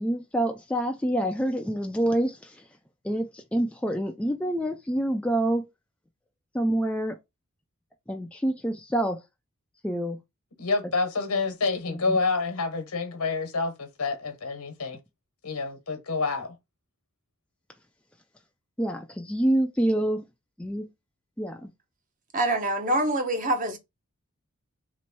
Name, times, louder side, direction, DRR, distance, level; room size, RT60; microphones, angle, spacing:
voice 1, 0.0-2.7 3.0-5.7 6.5-7.2 8.1-9.2 9.8-10.2 11.9-12.2 18.8-20.2 20.6-20.9 21.4-21.7, right 1 dB, 5° left, 0.3 m, -27 dB
voice 2, 10.6-15.0 15.4-16.6, left 4 dB, 85° left, 1.2 m, -28 dB
voice 3, 22.3-23.8, right 1 dB, 35° right, 0.8 m, -25 dB
3.0 x 3.0 x 4.3 m
head